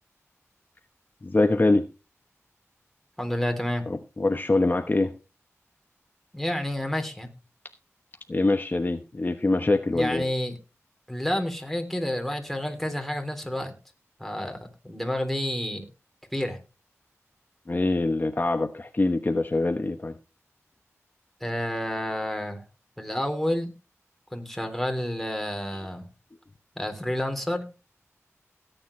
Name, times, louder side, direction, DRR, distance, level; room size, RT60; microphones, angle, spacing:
voice 1, 1.2-1.9 3.9-5.1 8.3-10.3 17.7-20.1, left 2 dB, 35° left, 1.0 m, -24 dB
voice 2, 3.2-3.9 6.3-7.3 9.9-10.6 11.1-13.7 14.2-15.9 16.3-16.6 21.4-22.6 23.0-23.7 24.3-26.1 26.8-27.6, left 1 dB, 5° left, 3.5 m, -29 dB
17.5 x 9.4 x 3.3 m
wide cardioid pair, 65°, 5 cm